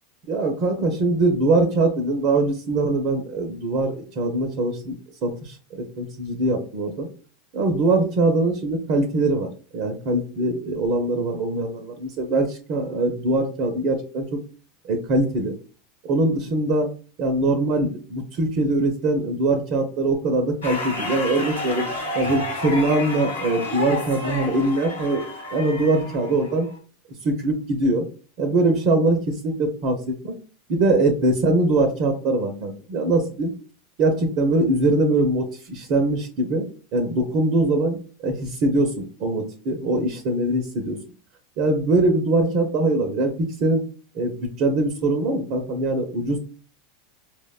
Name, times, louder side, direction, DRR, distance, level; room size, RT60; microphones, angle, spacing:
voice 1, 0.3-7.1 7.5-14.4 14.8-15.5 16.0-16.9 17.2-21.9 22.1-26.7 27.2-28.1 28.4-30.4 30.7-33.5 34.0-41.0 41.6-43.8 44.1-46.4, right 2 dB, 50° right, 5 dB, 0.6 m, -22 dB
sound 1, 20.6-26.8, left 1 dB, 90° left, 1.2 m, -31 dB
4.5 x 2.1 x 2.3 m, 0.38 s
hypercardioid pair, 85°, 0 cm